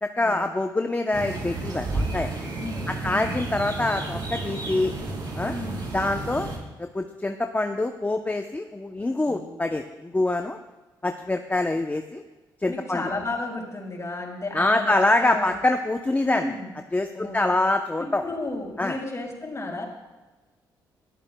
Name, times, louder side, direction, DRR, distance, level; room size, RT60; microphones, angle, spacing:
voice 1, 0.0-2.3 3.0-4.9 5.4-5.5 5.9-6.5 6.8-10.6 11.0-12.2 12.6-13.0 14.5-16.5 16.9-18.2 18.8-19.0, left 2 dB, 20° left, 5 dB, 0.7 m, -25 dB
sound 1, 1.1-6.6, right 2 dB, 55° right, 3.8 m, -32 dB
voice 2, 2.6-3.4 5.4-5.9 9.2-9.6 12.6-15.6 16.2-16.7 17.1-17.5 18.0-19.8, left 2 dB, 35° left, 0 dB, 4.4 m, -33 dB
20.5 x 12.0 x 2.3 m, 1.2 s
supercardioid pair, 55°, 9 cm